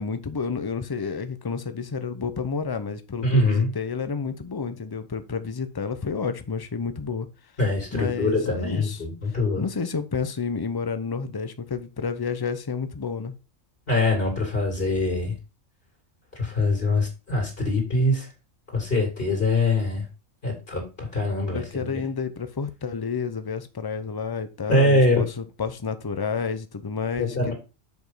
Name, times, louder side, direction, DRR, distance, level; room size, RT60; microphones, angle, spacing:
voice 1, 0.0-7.3 7.9-9.0 9.6-13.3 21.5-27.5, left 5 dB, 25° left, 0.5 m, -30 dB
voice 2, 3.2-3.7 7.6-9.6 13.9-15.3 16.3-18.3 18.7-20.1 20.4-22.0 24.7-25.2 27.2-27.5, left 2 dB, 45° left, 2.9 m, -23 dB
7.1 x 5.1 x 3.9 m
omnidirectional pair, 1.3 m